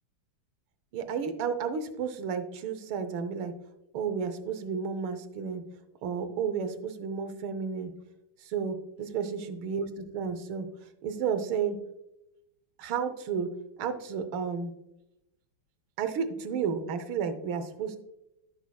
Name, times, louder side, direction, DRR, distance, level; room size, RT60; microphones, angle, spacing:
voice 1, 0.9-3.5 3.9-5.6 6.0-7.9 8.4-10.7 11.0-11.8 12.8-14.7 16.0-18.0, right 6 dB, 90° right, 9 dB, 1.7 m, -32 dB
15.0 x 5.8 x 2.3 m, 0.87 s
omnidirectional pair, 2.2 m